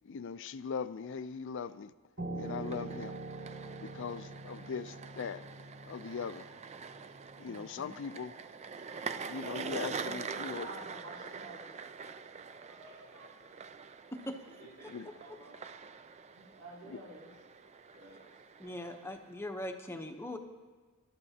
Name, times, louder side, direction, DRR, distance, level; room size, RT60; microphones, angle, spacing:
voice 1, 0.0-1.9 2.3-3.2 3.8-5.5 5.9-6.5 7.4-8.3 9.2-10.7 14.8-15.2 16.8-17.0, left 6 dB, 60° left, 0.4 m, -40 dB
Piano, 2.2-7.5, right 3 dB, 85° right, 5.7 m, -44 dB
sound 1, 2.4-19.3, right 5 dB, 30° right, 0.4 m, -45 dB
voice 2, 7.5-8.0 14.1-14.4 14.8-15.1 18.6-20.4, left 1 dB, 10° left, 0.8 m, -42 dB
voice 3, 10.0-11.7 12.4-13.3 14.6-14.9 15.2-15.6 16.3-17.3 17.9-18.2, right 2 dB, 60° right, 3.0 m, -50 dB
25.0 x 12.0 x 2.8 m
head